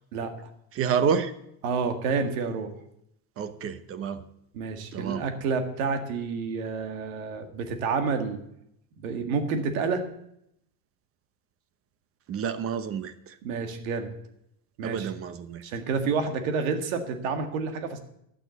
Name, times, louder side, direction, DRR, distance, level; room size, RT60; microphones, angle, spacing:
voice 1, 0.1-0.5 1.6-2.7 4.5-8.4 9.0-10.0 13.4-14.1 14.8-15.1 15.6-18.0, right 5 dB, 75° right, 6 dB, 2.0 m, -29 dB
voice 2, 0.7-1.3 3.4-4.2 4.9-5.2 12.3-13.3 14.8-15.6, right 7 dB, 35° right, 12 dB, 0.9 m, -29 dB
12.0 x 6.2 x 8.0 m, 0.76 s
supercardioid pair, 130°, 41 cm